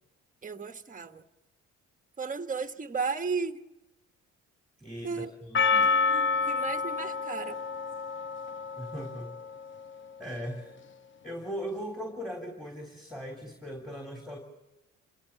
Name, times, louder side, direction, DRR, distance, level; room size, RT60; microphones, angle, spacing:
voice 1, 0.4-1.2 2.2-3.6 5.0-5.3 6.1-7.6, right 5 dB, 25° right, 7 dB, 1.4 m, -34 dB
voice 2, 4.8-5.1 5.4-5.9 8.8-9.3 10.2-10.8 11.2-14.4, equal, ahead, 2 dB, 3.4 m, -39 dB
Percussion, 5.5-9.9, left 4 dB, 40° left, 0.8 m, -29 dB
27.0 x 17.5 x 7.1 m, 0.99 s
cardioid pair, 90°, 30 cm